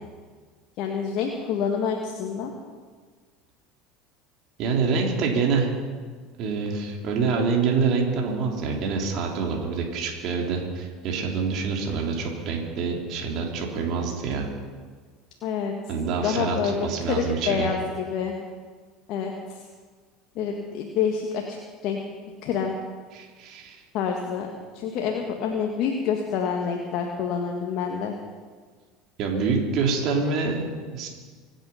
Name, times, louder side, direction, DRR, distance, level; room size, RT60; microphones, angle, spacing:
voice 1, 0.8-2.5 15.4-15.7 16.2-18.3 19.1-19.6 20.3-21.6 21.8-22.0 22.4-22.8 23.9-28.1, left 6 dB, 60° left, 1 dB, 1.7 m, -27 dB
voice 2, 4.6-5.7 6.4-14.5 15.9-17.7 23.1-23.8 29.2-31.1, right 5 dB, 55° right, 0 dB, 3.5 m, -26 dB
25.5 x 9.1 x 5.8 m, 1.5 s
hypercardioid pair, 75°, 0 cm